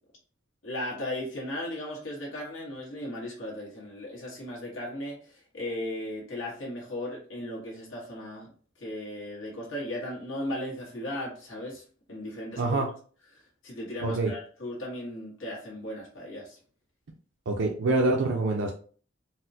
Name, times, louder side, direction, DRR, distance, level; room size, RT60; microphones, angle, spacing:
voice 1, 0.6-8.5 8.8-11.8 12.1-12.6 13.6-16.6, left 1 dB, 70° left, -4 dB, 1.4 m, -36 dB
voice 2, 14.0-14.3 17.5-18.7, right 2 dB, 60° right, 0 dB, 0.5 m, -25 dB
4.1 x 2.1 x 2.7 m, 0.42 s
head